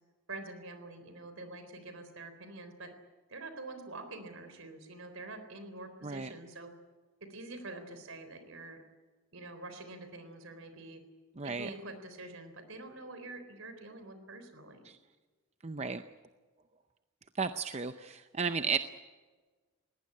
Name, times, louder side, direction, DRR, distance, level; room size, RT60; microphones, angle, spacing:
voice 1, 0.3-3.0 3.3-6.7 7.2-8.8 9.3-11.0 11.4-14.8, right 2 dB, 65° right, 9 dB, 3.9 m, -46 dB
voice 2, 11.4-11.7 14.9-15.0 15.6-16.0 17.4-18.8, right 5 dB, 30° right, 9 dB, 0.6 m, -34 dB
21.0 x 18.0 x 9.8 m, 1.3 s
head